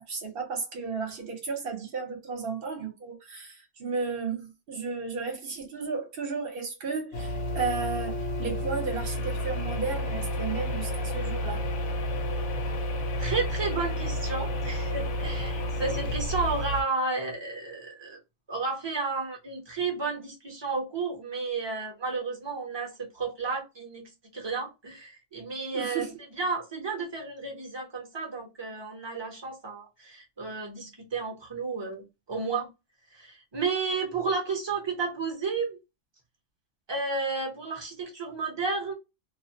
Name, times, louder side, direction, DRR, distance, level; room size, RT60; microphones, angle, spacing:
voice 1, 0.0-11.6 25.7-26.1, right 5 dB, 55° right, 1.0 m, -34 dB
sound 1, 7.1-16.8, left 1 dB, 85° left, 0.9 m, -31 dB
voice 2, 13.2-18.2 18.5-26.1 26.4-32.7 33.1-35.8 36.9-38.9, right 4 dB, 25° right, 0.7 m, -32 dB
2.4 x 2.1 x 2.6 m
omnidirectional pair, 1.2 m